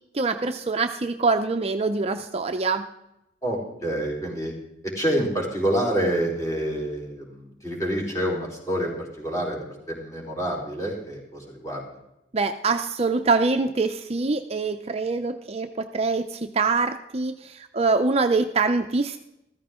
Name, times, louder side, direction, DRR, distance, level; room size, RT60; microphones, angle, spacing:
voice 1, 0.1-2.9 12.3-19.2, right 4 dB, 35° right, 7 dB, 0.6 m, -24 dB
voice 2, 3.4-4.6 4.8-12.0, right 1 dB, 20° left, -2 dB, 4.0 m, -27 dB
14.5 x 14.0 x 3.7 m, 0.86 s
head